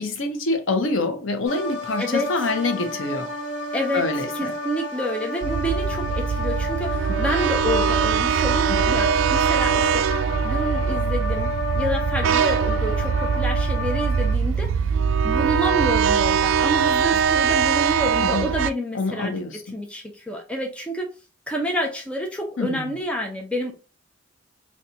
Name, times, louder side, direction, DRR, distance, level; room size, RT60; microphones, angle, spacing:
voice 1, 0.0-3.3 3.9-4.5 8.9-9.0 18.2-18.5 18.9-19.6 22.6-22.9, left 2 dB, 85° left, 0.8 m, -26 dB
sound 1, 1.4-14.3, left 1 dB, 40° right, 1.4 m, -30 dB
voice 2, 2.0-2.5 3.7-10.1 10.4-14.8 15.2-21.1 21.5-23.7, equal, 5° left, 0.6 m, -28 dB
sound 2, 5.4-18.7, right 7 dB, 80° right, 0.3 m, -22 dB
4.1 x 2.3 x 2.7 m
head